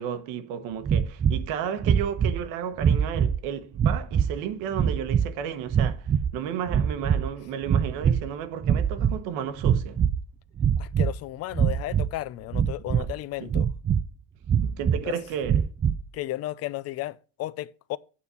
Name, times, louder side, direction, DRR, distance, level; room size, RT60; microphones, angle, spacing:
voice 1, 0.0-10.0 12.9-13.1 13.4-13.5 14.6-15.7, right 8 dB, 85° right, 1.2 m, -33 dB
sound 1, 0.8-1.5 1.8-2.4 2.8-3.4 3.8-4.4 4.7-5.3 5.7-6.4 6.7-7.3 7.6-8.3 8.6-9.2 9.6-10.2 10.6-11.1 11.5-12.1 12.5-13.1 13.5-14.1 14.5-15.0 15.4-16.0, right 8 dB, 25° right, 0.4 m, -23 dB
voice 2, 10.8-13.7 15.0-15.1 16.1-18.0, left 15 dB, 50° left, 0.5 m, -34 dB
8.8 x 4.2 x 6.9 m
cardioid pair, 130°, 31 cm